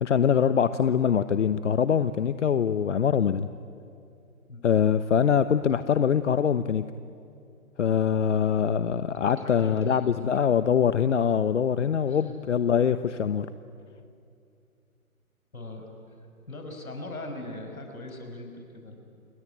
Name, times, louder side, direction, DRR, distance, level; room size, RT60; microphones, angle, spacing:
voice 1, 0.0-3.5 4.6-6.8 7.8-13.5, left 7 dB, 55° left, 12 dB, 1.0 m, -23 dB
voice 2, 9.4-10.0 10.5-10.6 12.1-12.2 15.5-15.8 16.5-19.0, left 2 dB, 80° left, 5 dB, 6.2 m, -40 dB
28.5 x 20.5 x 9.9 m, 2.5 s
figure-of-eight pair, 135°, 42 cm